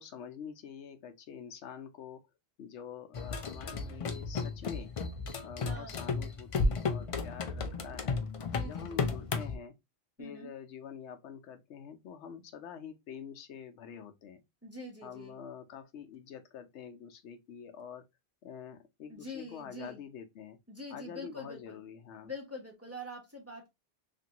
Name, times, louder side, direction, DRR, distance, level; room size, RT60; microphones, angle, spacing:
voice 1, 0.0-2.2 2.6-4.9 5.4-8.2 8.6-9.7 10.2-14.4 15.0-18.0 18.4-20.6 20.9-22.3, left 7 dB, 90° left, 0.9 m, -46 dB
sound 1, 3.1-9.6, left 4 dB, 55° left, 0.4 m, -34 dB
voice 2, 5.6-6.0 8.4-9.2 10.2-10.5 14.6-15.4 19.1-20.0 20.7-21.8 22.2-23.7, left 1 dB, 15° right, 0.7 m, -45 dB
3.0 x 2.5 x 2.8 m
omnidirectional pair, 1.1 m